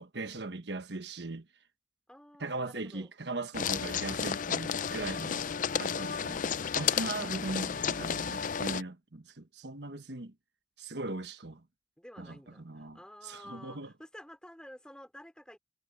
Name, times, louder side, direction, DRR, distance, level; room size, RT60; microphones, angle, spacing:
voice 1, 0.0-1.4 2.4-5.4 5.8-10.3 10.8-11.6 12.2-12.4 12.6-13.0 13.2-13.9, right 2 dB, 75° right, 1.3 m, -39 dB
voice 2, 2.1-3.1 6.8-7.3 12.0-15.6, equal, 5° left, 3.2 m, -52 dB
sound 1, 3.5-8.8, left 7 dB, 50° left, 0.5 m, -32 dB
head